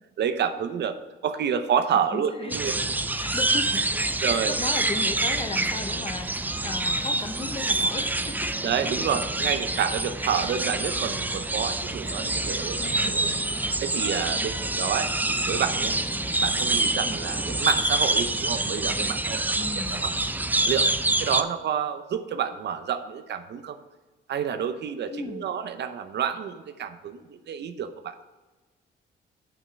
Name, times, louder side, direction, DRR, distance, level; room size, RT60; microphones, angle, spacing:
voice 1, 0.2-1.0 1.2-2.8 4.2-4.5 8.6-12.8 13.1-13.3 13.8-15.9 16.4-20.1 20.7-20.9 21.2-23.8 24.3-28.1, right 8 dB, 60° right, 10 dB, 0.7 m, -29 dB
voice 2, 2.1-2.6 3.1-8.6 10.2-10.6 12.7-13.4 14.3-14.6 17.0-17.2 19.6-20.2 25.1-25.5, left 3 dB, 30° left, 7 dB, 0.9 m, -36 dB
sound 1, 2.5-21.4, right 2 dB, 10° right, 0.4 m, -26 dB
Walk footsteps, 4.1-17.9, left 2 dB, 65° left, 2.0 m, -52 dB
5.6 x 5.4 x 6.3 m, 1.2 s
cardioid pair, 90°, 20 cm